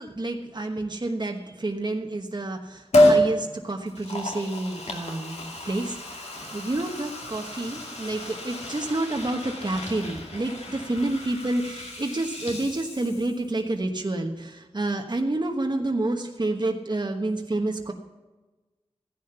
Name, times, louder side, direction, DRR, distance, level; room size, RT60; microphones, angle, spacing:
voice 1, 0.0-17.9, right 2 dB, 40° right, 3 dB, 1.2 m, -29 dB
Liquid, 2.9-3.3 3.9-13.5 13.8-13.9, left 1 dB, 75° left, 2.4 m, -28 dB
14.5 x 10.5 x 6.9 m, 1.2 s
wide cardioid pair, 55°, 11 cm